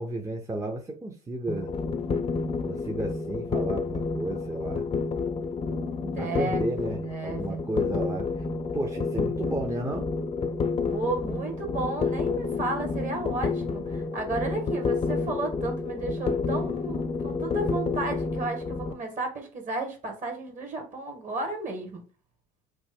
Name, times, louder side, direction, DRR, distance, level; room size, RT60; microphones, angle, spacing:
voice 1, 0.0-1.7 2.6-4.9 6.2-8.4 8.7-10.1, right 2 dB, 15° right, 0.6 m, -33 dB
sound 1, 1.5-18.9, left 4 dB, 30° left, 0.5 m, -30 dB
voice 2, 6.0-6.6 7.0-7.6 10.9-22.0, right 3 dB, 40° right, 1.4 m, -33 dB
3.1 x 2.1 x 3.5 m
hypercardioid pair, 60°, 19 cm